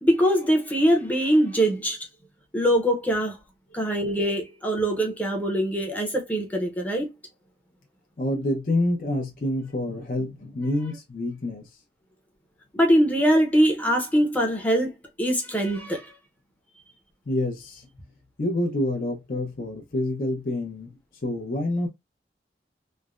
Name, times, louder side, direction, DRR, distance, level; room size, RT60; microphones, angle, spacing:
voice 1, 0.0-2.0 2.5-3.4 3.7-7.1 12.7-14.9 15.2-16.1, equal, 10° left, 0.7 m, -22 dB
voice 2, 8.2-11.7 17.3-17.9 18.4-20.9 21.2-21.9, left 1 dB, 50° left, 0.6 m, -27 dB
3.2 x 2.1 x 2.4 m
head